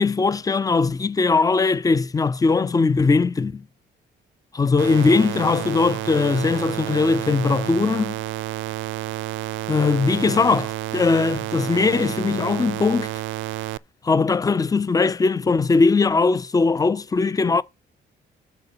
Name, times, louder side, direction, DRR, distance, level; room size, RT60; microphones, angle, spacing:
voice 1, 0.0-3.6 4.5-8.1 9.7-13.1 14.0-17.6, left 4 dB, 20° left, 0.5 m, -20 dB
sound 1, 4.8-13.8, right 17 dB, 75° right, 0.4 m, -30 dB
9.4 x 4.1 x 6.9 m
cardioid pair, 90°, 20 cm